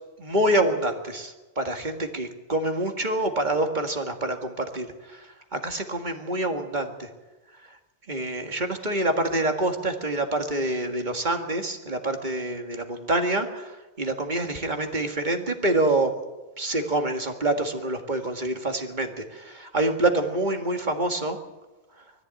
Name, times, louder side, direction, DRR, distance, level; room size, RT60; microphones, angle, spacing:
voice 1, 0.2-7.1 7.7-7.8 8.1-16.1 16.6-21.4, right 1 dB, 40° right, 5 dB, 2.0 m, -26 dB
21.5 x 14.0 x 8.9 m, 1.1 s
omnidirectional pair, 1.2 m